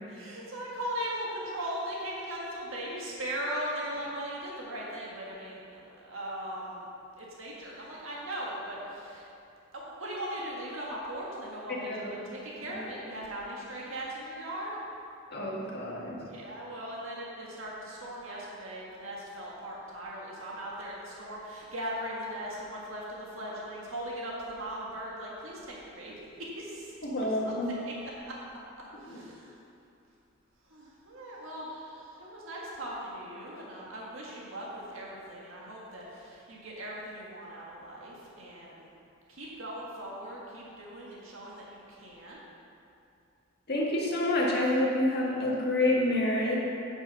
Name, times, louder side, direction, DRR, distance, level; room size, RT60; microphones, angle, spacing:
voice 1, 0.1-6.9 7.2-9.3 9.7-14.8 15.3-15.4 16.3-27.4 27.8-27.9 28.3-28.4 29.0-29.6 30.7-38.9 39.3-42.4, right 1 dB, 90° right, -4 dB, 1.7 m, -39 dB
voice 2, 15.3-16.2 27.0-27.7 29.1-29.2 43.7-46.6, left 1 dB, 55° left, -4 dB, 1.7 m, -28 dB
9.1 x 7.2 x 5.3 m, 2.6 s
head